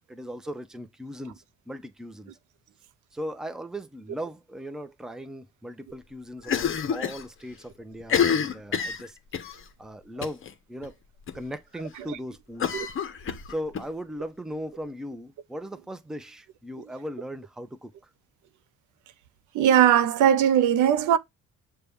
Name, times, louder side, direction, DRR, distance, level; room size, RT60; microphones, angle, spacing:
voice 1, 0.0-2.3 3.1-9.2 9.8-10.9 11.3-12.8 13.5-17.9, equal, ahead, 0.5 m, -38 dB
Cough, 6.4-7.2 7.5-7.6 8.0-9.6 10.2-10.5 10.8-10.9 11.3-11.4 12.6-13.8, left 7 dB, 45° left, 0.7 m, -27 dB
voice 2, 19.5-21.2, right 10 dB, 75° right, 0.5 m, -19 dB
6.7 x 2.3 x 3.4 m
cardioid pair, 90°, 30 cm